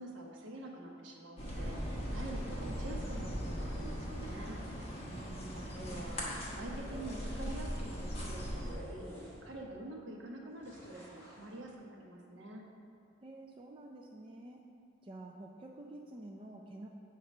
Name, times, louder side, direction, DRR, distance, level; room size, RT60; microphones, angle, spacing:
voice 1, 0.0-4.7 5.5-9.1 9.4-12.6, right 1 dB, 70° right, 0 dB, 1.0 m, -47 dB
sound 1, 1.4-8.7, equal, 30° left, 1.2 m, -39 dB
voice 2, 5.1-6.1 13.2-14.6 15.0-16.9, right 2 dB, 25° right, 0 dB, 0.4 m, -49 dB
sound 2, 6.7-7.6 8.6-9.7 10.6-11.6, equal, 10° left, 1.6 m, -51 dB
7.9 x 3.9 x 5.3 m, 2.4 s
head